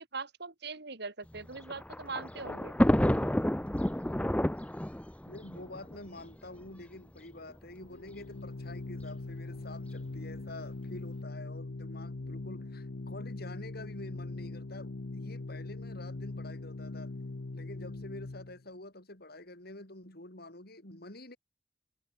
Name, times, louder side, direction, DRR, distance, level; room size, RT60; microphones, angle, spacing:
voice 1, 0.1-2.7, right 4 dB, 65° right, 2.8 m, -41 dB
Thunder, 1.3-6.7 7.5-7.6 7.8-7.9 9.0-9.3, equal, 5° left, 0.7 m, -30 dB
voice 2, 5.3-17.1 17.5-21.4, left 2 dB, 60° left, 6.0 m, -47 dB
Organ, 7.9-18.6, left 2 dB, 75° left, 0.9 m, -41 dB
head